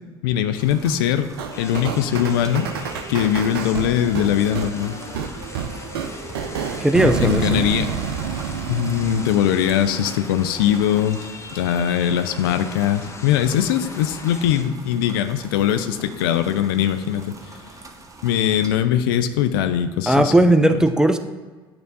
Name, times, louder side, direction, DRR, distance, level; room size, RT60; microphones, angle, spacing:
voice 1, 0.2-1.3 1.6-2.7 3.1-5.0 7.2-7.9 8.7-11.2 11.5-17.5 18.2-20.5, left 10 dB, 70° left, 10 dB, 0.4 m, -21 dB
sound 1, 0.6-18.7, right 3 dB, 25° right, 0.9 m, -44 dB
sound 2, 1.4-10.2, right 7 dB, 75° right, 0.5 m, -29 dB
sound 3, 1.5-14.6, left 3 dB, 25° left, 0.8 m, -39 dB
voice 2, 6.8-7.6 20.1-21.2, right 1 dB, 5° right, 8 dB, 0.5 m, -17 dB
8.7 x 3.3 x 4.0 m, 1.4 s
figure-of-eight pair, 60°, 12 cm